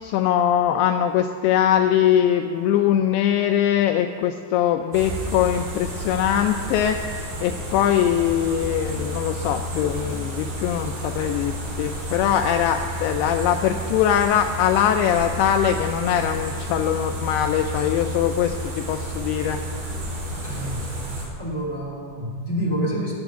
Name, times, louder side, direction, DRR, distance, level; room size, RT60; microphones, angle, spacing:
voice 1, 0.0-7.0 7.4-19.6, left 10 dB, 85° left, 6 dB, 2.3 m, -22 dB
sound 1, 4.9-21.3, equal, 90° right, 6.5 m, -31 dB
voice 2, 20.3-23.1, equal, 5° left, -6 dB, 2.6 m, -28 dB
13.0 x 6.9 x 9.0 m, 2.5 s
omnidirectional pair, 5.1 m